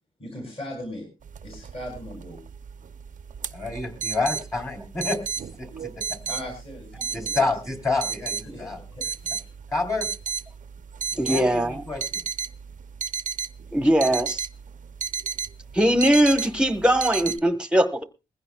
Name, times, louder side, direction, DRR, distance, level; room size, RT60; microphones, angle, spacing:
voice 1, 0.2-1.1 1.4-2.4 6.3-7.5 8.5-9.1 9.4-9.5, left 1 dB, 40° left, 5.7 m, -38 dB
sound 1, 1.3-17.4, right 6 dB, 60° right, 0.6 m, -34 dB
voice 2, 3.5-5.2 5.6-6.2 7.1-8.8 9.7-10.1 11.1-12.2, left 3 dB, 20° left, 2.9 m, -28 dB
voice 3, 11.2-11.8 13.7-14.5 15.7-18.0, right 1 dB, 5° right, 1.1 m, -21 dB
21.5 x 15.5 x 2.3 m
wide cardioid pair, 125°, 15 cm